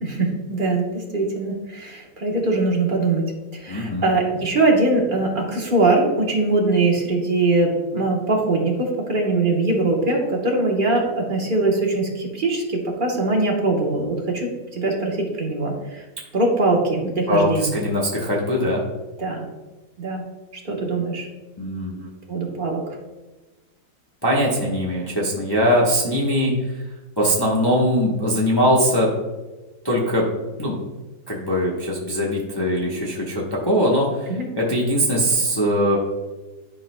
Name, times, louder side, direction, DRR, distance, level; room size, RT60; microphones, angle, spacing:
voice 1, 0.0-3.2 3.5-16.0 16.3-17.7 19.2-19.5 20.0-20.3 20.6-21.3 22.3-22.8 34.3-34.5, right 2 dB, 35° right, 0 dB, 1.0 m, -22 dB
voice 2, 3.7-4.1 17.3-18.8 21.6-22.1 24.2-26.5 27.2-29.1 29.8-30.2 30.6-30.7 31.3-34.3 34.5-36.0, equal, 20° left, -4 dB, 0.7 m, -21 dB
11.5 x 4.8 x 2.2 m, 1.2 s
omnidirectional pair, 2.0 m